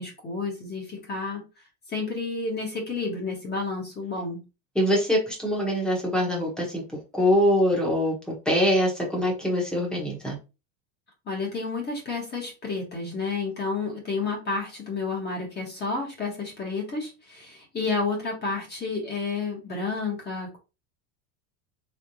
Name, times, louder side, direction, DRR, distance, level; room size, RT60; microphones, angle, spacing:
voice 1, 0.0-4.4 11.2-20.6, left 4 dB, 20° left, -1 dB, 1.4 m, -31 dB
voice 2, 4.7-6.8 7.1-8.1 8.4-10.4, equal, ahead, -2 dB, 1.2 m, -23 dB
3.6 x 3.4 x 2.8 m, 0.29 s
supercardioid pair, 150°, 45 cm